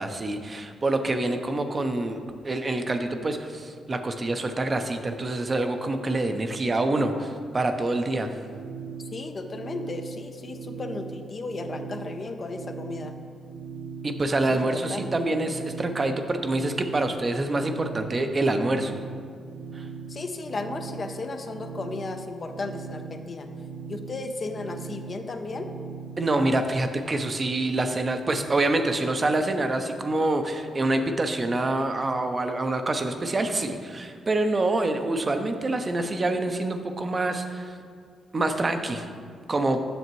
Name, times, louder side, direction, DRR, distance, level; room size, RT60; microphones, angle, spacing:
voice 1, 0.0-2.2 2.4-8.3 14.0-19.0 19.7-19.9 26.2-37.7 38.3-39.1 39.5-39.8, right 2 dB, 40° right, 6 dB, 0.6 m, -26 dB
sound 1, 8.3-26.3, right 5 dB, 85° right, 0.3 m, -40 dB
voice 2, 9.1-13.2 14.5-15.1 20.1-23.5 23.9-25.7, left 3 dB, 45° left, 6 dB, 0.6 m, -35 dB
8.1 x 6.5 x 3.1 m, 2.1 s
supercardioid pair, 50°, 0 cm